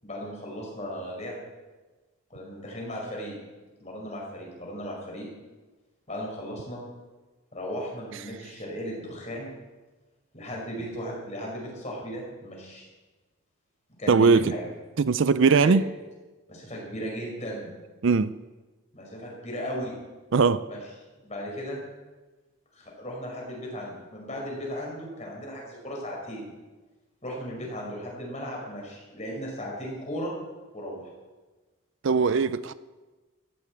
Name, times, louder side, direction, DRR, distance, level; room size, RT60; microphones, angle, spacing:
voice 1, 0.0-1.4 2.3-3.3 3.8-5.3 6.1-6.8 7.5-9.5 10.3-12.9 14.0-14.7 15.6-15.7 16.5-17.7 18.9-19.9 20.7-20.8 21.2-21.8 22.7-26.5 27.2-30.3 30.7-31.1, equal, 30° left, 5.3 m, -36 dB
voice 2, 14.1-14.5 15.0-15.8 18.0-18.3 20.3-20.7 32.0-32.7, right 4 dB, 60° right, 0.4 m, -20 dB
15.0 x 8.5 x 8.6 m
head